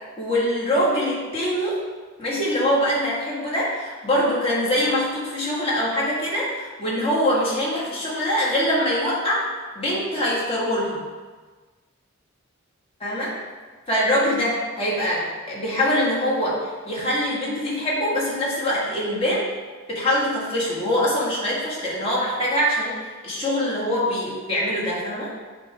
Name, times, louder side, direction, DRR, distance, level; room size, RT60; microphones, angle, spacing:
voice 1, 0.2-1.8 2.2-9.5 9.8-11.1 13.0-13.3 13.9-16.6 16.9-19.5 19.9-23.0 23.2-25.3, equal, 30° left, -6 dB, 1.7 m, -23 dB
8.0 x 3.2 x 4.7 m, 1.4 s
head